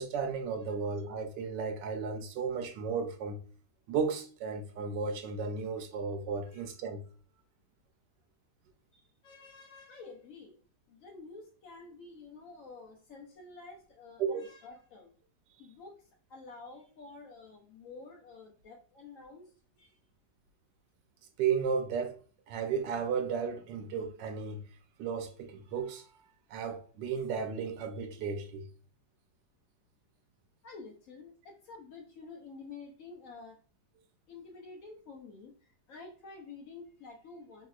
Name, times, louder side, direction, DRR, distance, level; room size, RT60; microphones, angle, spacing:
voice 1, 0.0-3.4 3.9-7.0 14.2-14.5 21.4-22.2 22.5-24.6 25.0-26.1 26.5-28.7, right 6 dB, 90° right, 1.2 m, -34 dB
voice 2, 8.9-10.6 10.9-15.1 15.6-19.5 19.8-20.0 30.6-33.6 34.3-37.7, left 4 dB, 65° left, 0.8 m, -50 dB
3.2 x 2.7 x 2.3 m
omnidirectional pair, 1.8 m